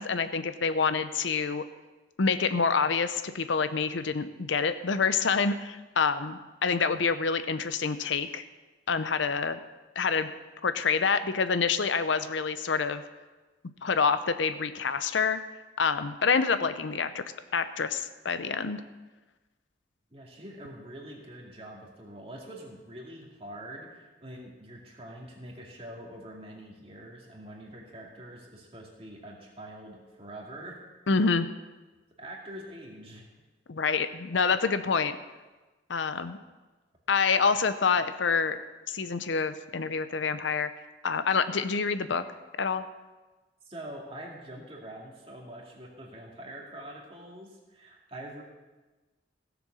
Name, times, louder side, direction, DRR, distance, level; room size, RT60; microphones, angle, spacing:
voice 1, 0.0-1.6 2.2-8.4 8.9-9.6 10.0-10.3 10.6-13.0 13.8-15.4 15.8-17.2 17.5-18.8 31.1-31.5 33.7-35.2 35.9-36.4 37.1-38.6 38.9-40.7 41.0-42.2 42.6-42.8, left 5 dB, 70° left, 11 dB, 0.6 m, -27 dB
voice 2, 20.1-30.8 32.2-33.3 43.6-48.4, right 1 dB, 30° right, -1 dB, 2.3 m, -44 dB
16.0 x 7.0 x 6.3 m, 1.2 s
head